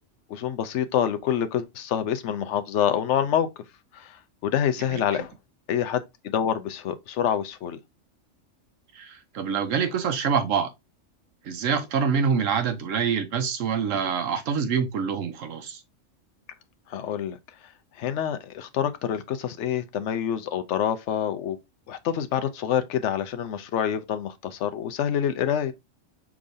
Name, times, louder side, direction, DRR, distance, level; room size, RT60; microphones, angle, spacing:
voice 1, 0.3-3.5 3.9-5.3 5.7-7.8 16.9-17.4 18.0-21.6 21.9-25.7, left 9 dB, 70° left, 0.9 m, -27 dB
voice 2, 4.9-5.2 8.9-10.7 11.4-15.8, right 6 dB, 90° right, 1.2 m, -26 dB
4.9 x 3.6 x 2.6 m
omnidirectional pair, 1.3 m